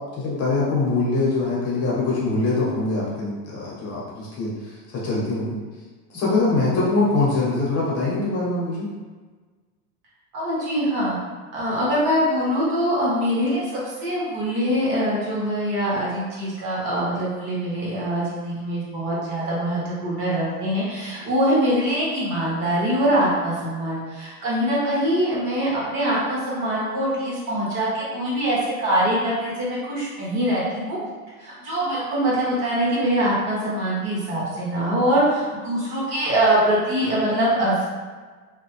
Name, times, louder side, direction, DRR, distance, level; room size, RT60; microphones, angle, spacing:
voice 1, 0.0-4.5 4.9-5.6 6.1-8.9, left 3 dB, 30° left, -6 dB, 1.1 m, -23 dB
voice 2, 10.3-11.2 11.5-31.0 31.4-37.8, right 1 dB, 45° right, -6 dB, 1.2 m, -23 dB
2.8 x 2.2 x 3.1 m, 1.4 s
hypercardioid pair, 105°, 45 cm